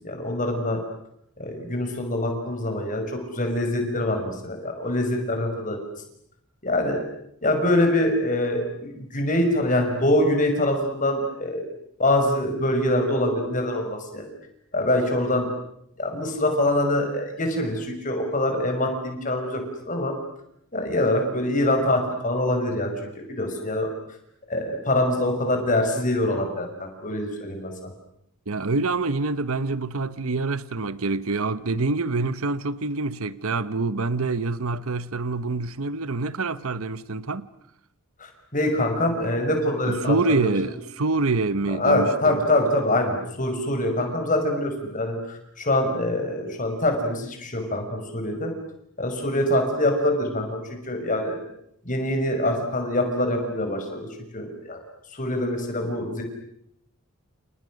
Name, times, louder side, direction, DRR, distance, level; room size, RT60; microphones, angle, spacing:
voice 1, 0.0-0.8 1.4-5.8 6.6-7.0 7.4-11.6 12.0-14.3 14.7-15.5 16.0-20.1 20.7-22.9 23.3-23.9 24.5-27.7 38.2-40.1 40.4-40.5 41.7-48.5 49.0-51.4 51.8-54.1 54.3-54.8 55.1-56.2, left 1 dB, 35° left, 6.0 m, -24 dB
voice 2, 28.5-37.5 39.9-42.4, right 3 dB, 75° right, 1.0 m, -26 dB
29.5 x 29.0 x 6.5 m
head